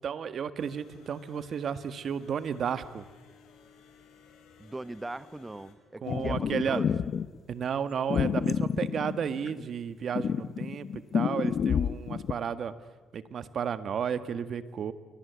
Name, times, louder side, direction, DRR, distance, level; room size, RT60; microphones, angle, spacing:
voice 1, 0.0-3.0 6.0-6.8 7.5-12.7 13.1-14.9, right 7 dB, 60° right, 12 dB, 1.7 m, -33 dB
sound 1, 0.6-5.7, left 6 dB, 85° left, 5.1 m, -57 dB
voice 2, 4.6-6.9, right 2 dB, 15° right, 16 dB, 1.1 m, -40 dB
sound 2, 6.1-7.3 8.1-9.6 10.1-12.3, left 7 dB, 60° left, 1.0 m, -29 dB
29.5 x 24.0 x 8.3 m, 1.3 s
cardioid pair, 90°, 0 cm